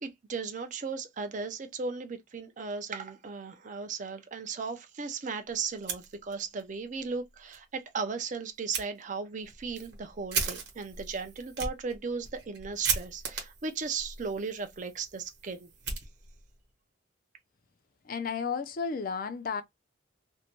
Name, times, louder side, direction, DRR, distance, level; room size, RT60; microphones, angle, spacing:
voice 1, 0.0-15.7, right 5 dB, 40° right, 0.5 m, -36 dB
Fire, 5.7-6.6 7.0-7.1 7.5-7.6 8.7-8.9 9.4-16.6, right 5 dB, 55° right, 1.0 m, -37 dB
voice 2, 18.0-19.6, left 5 dB, 45° left, 0.4 m, -33 dB
2.6 x 2.1 x 2.9 m
head